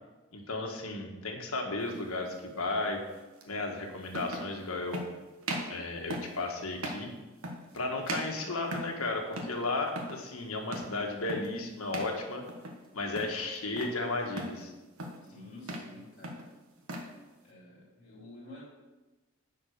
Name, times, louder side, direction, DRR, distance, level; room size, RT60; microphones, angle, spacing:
voice 1, 0.3-3.0 3.5-5.0 5.7-7.1 7.7-12.4 12.9-14.7, left 2 dB, 90° left, 2 dB, 1.5 m, -34 dB
sound 1, 1.9-2.1 3.4-3.5 4.1-4.5 4.9-5.1 5.4-5.8 6.1-6.4 6.8-7.1 7.4-7.8 8.1-9.0 9.3-9.6 9.9-10.2 10.7-11.0 11.3-11.6 11.9-12.2 12.5-12.9 13.1-14.0 14.4-14.6 15.0-15.3 15.6-15.9 16.2-17.1, right 1 dB, 85° right, 1.3 m, -38 dB
voice 2, 15.3-16.4 17.4-18.6, left 2 dB, 40° left, -8 dB, 3.2 m, -50 dB
9.8 x 4.7 x 6.5 m, 1.2 s
head